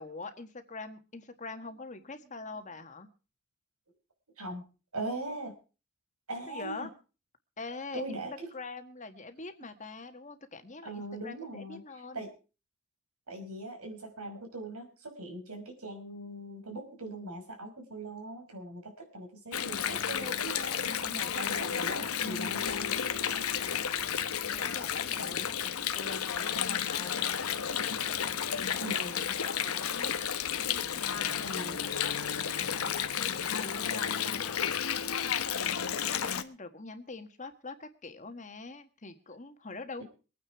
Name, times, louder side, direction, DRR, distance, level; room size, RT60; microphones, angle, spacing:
voice 1, 0.0-3.1 6.5-6.9 7.6-8.2 8.5-12.3 23.6-27.3 27.9-34.8 36.1-40.0, left 3 dB, 35° left, 8 dB, 1.5 m, -45 dB
voice 2, 4.9-5.5 6.3-6.9 7.9-8.5 10.8-11.8 12.1-12.3 13.3-22.9 25.2-25.7 28.8-29.2 31.4-31.8 40.0-40.1, right 2 dB, 90° right, 4 dB, 5.6 m, -41 dB
Water, 19.5-36.4, left 8 dB, 85° left, 1.1 m, -32 dB
23.0 x 9.5 x 4.7 m, 0.36 s
head